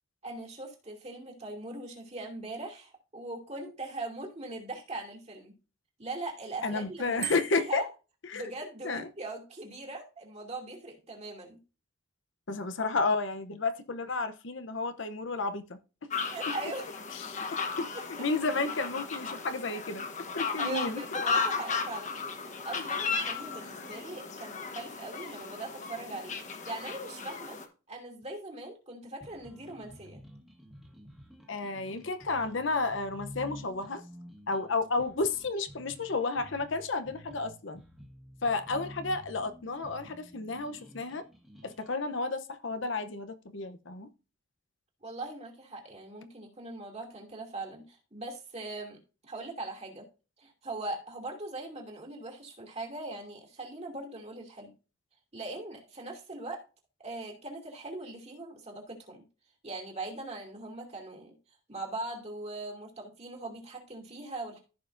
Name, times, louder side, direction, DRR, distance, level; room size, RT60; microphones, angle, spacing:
voice 1, 0.2-5.5 6.0-7.2 7.5-7.9 8.3-11.6 16.3-16.9 17.9-18.3 20.6-22.1 22.4-27.6 27.9-30.2 45.0-49.0 49.2-50.1 50.4-54.7 55.3-56.6 57.0-59.2 59.6-61.3 61.7-64.6, right 2 dB, 30° right, 2.5 m, -40 dB
voice 2, 6.6-7.8 8.3-8.5 8.8-9.1 12.5-15.8 17.2-20.1 20.3-21.0 22.8-22.9 31.5-34.0 34.5-37.8 38.4-41.2 41.6-44.1, left 3 dB, 65° left, 0.8 m, -32 dB
Bicycle bell, 7.2-7.8, right 18 dB, 70° right, 0.8 m, -38 dB
sound 1, 16.1-27.7, left 5 dB, 35° left, 1.1 m, -35 dB
sound 2, 29.2-42.2, equal, ahead, 1.7 m, -50 dB
15.0 x 5.6 x 2.6 m
head